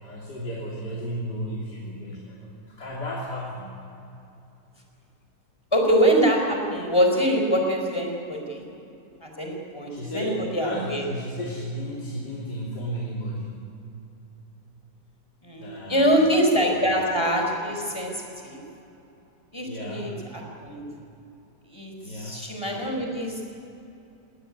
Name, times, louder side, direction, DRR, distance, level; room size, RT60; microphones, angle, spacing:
voice 1, 0.0-3.8 9.9-13.6 15.5-16.2 16.6-17.0 19.7-20.1 22.0-22.4, equal, 85° left, -5 dB, 3.7 m, -34 dB
voice 2, 5.7-8.6 9.2-11.0 15.4-18.6 19.5-20.8 21.7-23.4, equal, 15° left, 1 dB, 4.6 m, -24 dB
20.0 x 18.5 x 9.8 m, 2.9 s
omnidirectional pair, 1.8 m